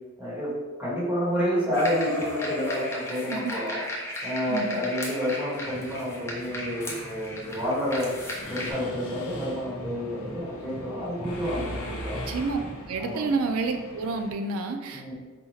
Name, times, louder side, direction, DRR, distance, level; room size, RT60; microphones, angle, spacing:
voice 1, 0.2-0.5 0.8-3.8 4.2-8.2 8.5-12.2 13.0-13.2 14.9-15.1, equal, 10° right, -10 dB, 1.3 m, -29 dB
sound 1, 1.7-8.7, left 1 dB, 10° left, 0.4 m, -35 dB
voice 2, 4.5-4.8 12.3-12.6 12.9-15.1, right 4 dB, 75° right, 6 dB, 0.4 m, -29 dB
sound 2, 5.5-13.0, right 1 dB, 50° left, 0.9 m, -43 dB
Mechanisms, 8.4-14.3, equal, 80° left, 0.7 m, -40 dB
4.1 x 2.3 x 3.1 m, 1.3 s
head